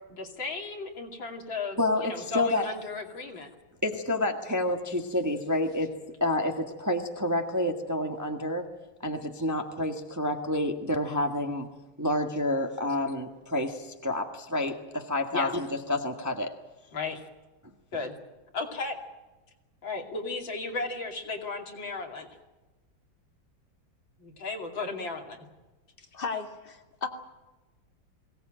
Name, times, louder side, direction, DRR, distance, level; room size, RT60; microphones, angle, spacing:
voice 1, 0.1-3.5 15.3-15.5 16.9-17.2 17.9-18.1 18.5-19.0 19.8-22.3 24.2-25.4, left 3 dB, 65° left, 2 dB, 3.4 m, -35 dB
voice 2, 1.8-2.7 3.8-8.6 9.0-11.7 12.0-16.5, left 1 dB, 10° right, 4 dB, 1.4 m, -29 dB
voice 3, 26.1-27.1, left 5 dB, 25° left, 3 dB, 2.2 m, -34 dB
22.5 x 18.0 x 8.9 m, 1.2 s
omnidirectional pair, 2.3 m